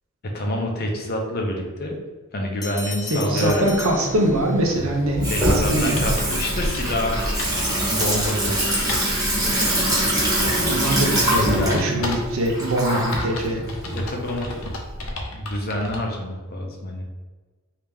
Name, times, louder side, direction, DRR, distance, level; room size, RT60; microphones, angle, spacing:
voice 1, 0.3-2.0 2.3-3.7 5.3-7.2 7.9-8.9 11.5-12.0 13.9-14.6 15.3-17.0, left 1 dB, 45° left, 1 dB, 0.6 m, -27 dB
Bell, 2.6-4.8, left 3 dB, 20° left, 0.3 m, -36 dB
voice 2, 3.1-6.0 10.6-13.6, right 1 dB, 80° right, 1 dB, 0.7 m, -23 dB
Water tap faucet / Sink (filling or washing), 3.4-15.1, right 1 dB, 15° right, 1.1 m, -24 dB
sound 1, 6.0-9.1 9.5-9.6 10.0-12.4 13.1-16.0, left 2 dB, 85° left, 0.6 m, -34 dB
3.3 x 2.8 x 3.4 m, 1.3 s
head